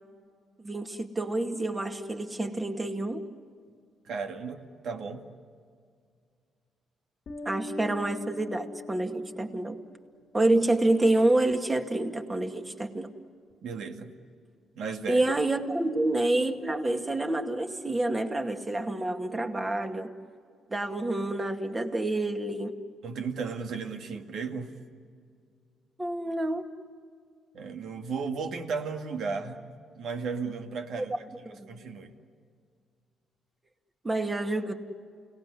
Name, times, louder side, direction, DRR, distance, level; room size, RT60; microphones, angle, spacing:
voice 1, 0.6-3.2 7.5-9.8 10.3-13.1 15.1-20.1 20.7-22.7 26.0-26.6 31.5-31.7 34.0-34.7, right 2 dB, 20° right, 5 dB, 2.2 m, -28 dB
voice 2, 4.1-5.3 13.6-14.2 14.8-15.3 23.0-24.8 27.5-31.1 31.7-32.1, right 5 dB, 70° right, 5 dB, 2.1 m, -35 dB
Bass guitar, 7.3-9.7, left 2 dB, 55° left, 1.6 m, -42 dB
29.5 x 18.5 x 9.9 m, 2.2 s
cardioid pair, 90°, 0 cm